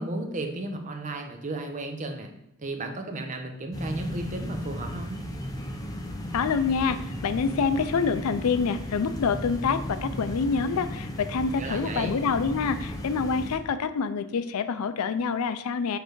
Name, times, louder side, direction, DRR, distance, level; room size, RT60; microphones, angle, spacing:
voice 1, 0.0-2.3 2.6-5.2 11.5-12.1, right 2 dB, 35° right, 5 dB, 0.7 m, -34 dB
sound 1, 3.7-13.6, equal, 15° left, 0.7 m, -35 dB
voice 2, 6.3-16.0, left 5 dB, 85° left, 12 dB, 0.4 m, -27 dB
6.6 x 3.3 x 4.6 m, 0.84 s
head